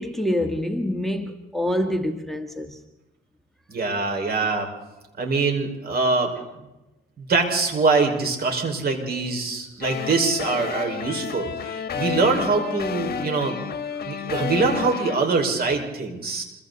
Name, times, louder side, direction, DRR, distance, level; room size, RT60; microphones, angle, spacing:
voice 1, 0.0-2.8 13.9-14.1, left 1 dB, ahead, 1.6 m, -26 dB
voice 2, 3.7-4.7 5.2-6.4 7.2-13.6 14.1-16.4, right 3 dB, 50° right, 5.5 m, -23 dB
sound 1, 9.8-15.2, left 7 dB, 50° left, 1.6 m, -31 dB
26.5 x 23.5 x 4.2 m
cardioid pair, 90°, 20 cm